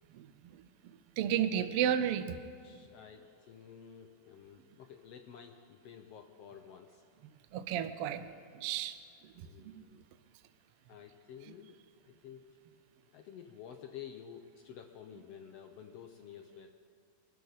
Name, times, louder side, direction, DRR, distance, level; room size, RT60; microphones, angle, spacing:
voice 1, 0.5-2.4 7.5-9.0 9.4-10.0, right 9 dB, 75° right, 10 dB, 1.3 m, -33 dB
voice 2, 2.6-7.1 9.3-10.0 10.9-11.8 12.0-12.5 13.1-16.7, left 8 dB, 70° left, 5 dB, 1.5 m, -51 dB
23.5 x 13.0 x 4.0 m, 2.3 s
omnidirectional pair, 3.5 m